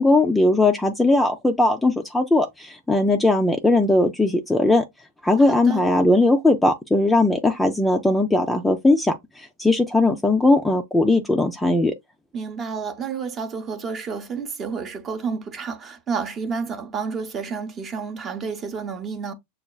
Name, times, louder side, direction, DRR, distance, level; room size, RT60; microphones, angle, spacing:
voice 1, 0.0-4.8 5.2-11.9, left 2 dB, 5° left, 0.4 m, -19 dB
voice 2, 5.5-5.9 12.3-19.3, right 5 dB, 25° right, 0.7 m, -30 dB
6.9 x 2.3 x 2.2 m
supercardioid pair, 145°, 0 cm